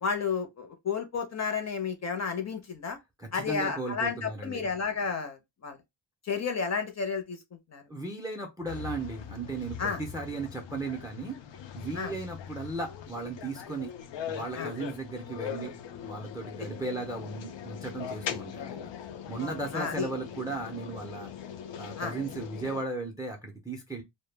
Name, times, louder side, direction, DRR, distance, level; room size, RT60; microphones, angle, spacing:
voice 1, 0.0-3.0 3.3-5.8 6.2-7.4 7.7-7.8 9.8-10.0 11.9-12.1 14.6-14.7 19.4-20.1 22.0-22.1, left 5 dB, 40° left, 0.6 m, -32 dB
voice 2, 3.2-4.7 7.9-11.4 11.7-13.9 14.3-15.7 16.0-18.9 19.3-21.3 21.8-24.0, right 3 dB, 10° right, 0.4 m, -36 dB
sound 1, 8.7-22.8, left 8 dB, 75° left, 0.5 m, -41 dB
2.2 x 2.1 x 3.2 m
wide cardioid pair, 130°, 44 cm